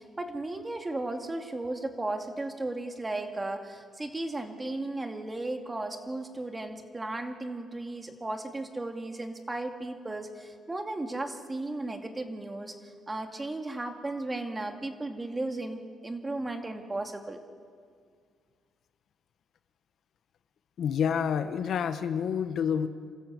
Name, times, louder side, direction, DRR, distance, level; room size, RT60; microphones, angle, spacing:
voice 1, 0.0-17.4, right 2 dB, 20° right, 5 dB, 2.4 m, -35 dB
voice 2, 20.8-22.9, left 7 dB, 65° left, 10 dB, 1.1 m, -28 dB
27.5 x 13.5 x 8.2 m, 2.1 s
cardioid pair, 80°, 0 cm